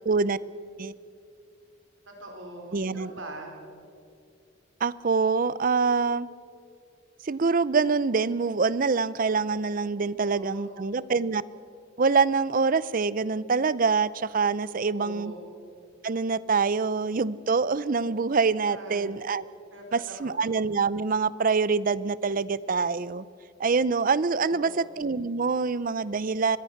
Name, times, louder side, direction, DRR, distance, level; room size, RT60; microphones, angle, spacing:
voice 1, 0.1-0.4 0.8-0.9 2.7-3.1 4.8-6.3 7.2-11.4 12.0-15.3 16.0-19.5 19.9-23.2 23.6-26.6, right 4 dB, 45° right, 19 dB, 0.5 m, -25 dB
voice 2, 2.1-3.6 10.3-11.0 14.8-15.4 18.6-19.1 19.7-20.4 24.4-24.9, right 1 dB, 70° right, 2 dB, 4.7 m, -42 dB
25.0 x 21.0 x 6.5 m, 2.4 s
head